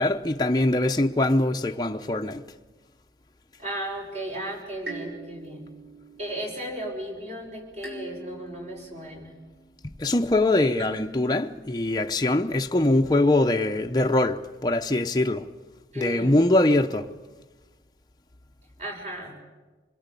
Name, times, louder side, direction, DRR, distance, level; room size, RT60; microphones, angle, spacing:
voice 1, 0.0-2.4 10.0-15.4 16.0-17.1, left 2 dB, 20° left, 0.8 m, -23 dB
voice 2, 3.6-5.6 6.2-9.3 15.9-16.4 18.8-19.4, right 1 dB, 40° right, 5.9 m, -35 dB
sound 1, 4.8-7.3 7.8-9.9 10.7-12.4, right 2 dB, 65° right, 5.8 m, -44 dB
26.0 x 21.0 x 8.4 m
head